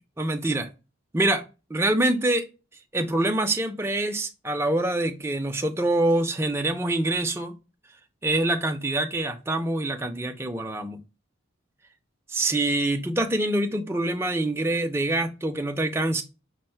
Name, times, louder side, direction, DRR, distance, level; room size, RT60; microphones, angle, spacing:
voice 1, 0.2-0.7 1.1-1.4 1.7-2.4 2.9-7.5 8.2-11.0 12.3-16.2, right 1 dB, 10° right, 0.4 m, -25 dB
5.2 x 2.0 x 4.3 m
head